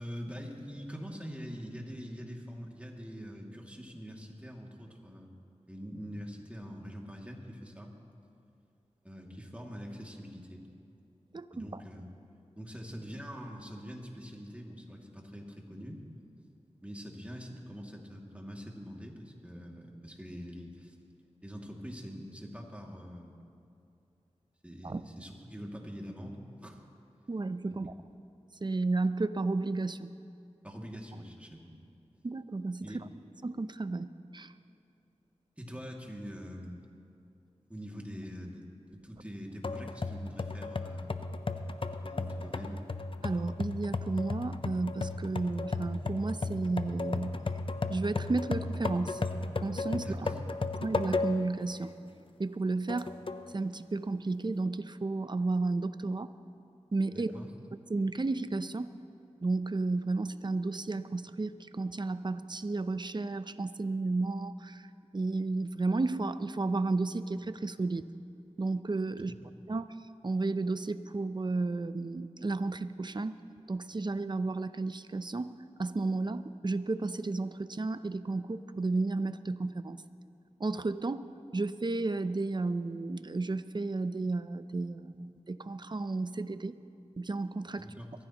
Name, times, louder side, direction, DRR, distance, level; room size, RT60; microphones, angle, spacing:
voice 1, 0.0-5.3 5.7-7.9 9.0-10.6 11.5-12.1 12.6-16.0 16.8-21.0 21.4-23.4 24.6-26.8 27.7-27.8 30.6-31.7 32.8-33.0 35.6-36.8 37.7-38.6 38.9-41.1 41.8-42.9 50.0-50.5 57.1-57.5 69.3-69.5 87.8-88.1, equal, 10° right, -1 dB, 2.4 m, -44 dB
voice 2, 11.3-11.8 24.8-25.0 27.3-27.9 28.6-30.1 32.2-32.9 33.4-34.1 34.3-34.5 43.2-47.3 47.9-49.2 49.6-50.3 50.8-51.9 52.4-53.1 53.5-56.3 56.9-57.3 57.9-58.9 59.4-64.9 65.1-68.0 68.6-69.3 69.7-69.9 70.2-73.4 73.7-80.0 80.6-81.3 81.5-86.8 87.2-87.9, right 3 dB, 40° right, 12 dB, 0.6 m, -32 dB
sound 1, 39.6-51.6 52.0-52.1 52.9-53.5, left 3 dB, 45° left, 0.7 m, -35 dB
22.5 x 14.5 x 3.0 m, 2.5 s
cardioid pair, 40°, 12 cm